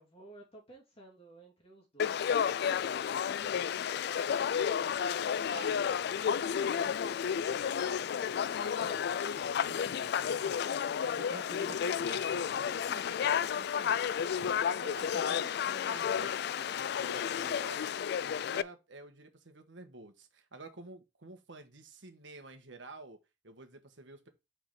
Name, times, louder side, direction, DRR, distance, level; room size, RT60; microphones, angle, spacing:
voice 1, 0.0-5.1 5.3-8.2 10.4-11.0, right 2 dB, 30° left, 2.7 m, -57 dB
Conversation / Crowd, 2.0-18.6, left 8 dB, 60° left, 0.3 m, -32 dB
voice 2, 5.5-5.9 8.5-10.5 11.2-14.0 14.5-17.9 18.2-24.3, right 2 dB, 70° right, 1.4 m, -50 dB
5.3 x 4.9 x 5.8 m
head